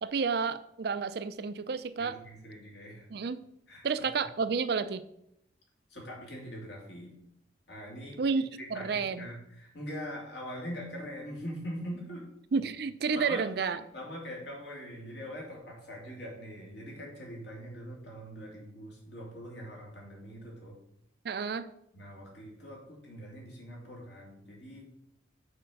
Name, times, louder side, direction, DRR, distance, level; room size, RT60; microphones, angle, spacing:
voice 1, 0.0-2.2 3.1-3.4 3.8-5.0 8.2-9.3 12.5-13.8 21.2-21.7, right 5 dB, 60° right, 13 dB, 0.4 m, -31 dB
voice 2, 2.0-3.1 3.7-3.9 5.9-7.1 7.7-8.2 8.6-12.2 13.1-13.4 13.9-20.8 21.9-24.8, equal, 65° left, -2 dB, 3.0 m, -42 dB
6.8 x 4.4 x 6.4 m, 0.75 s
head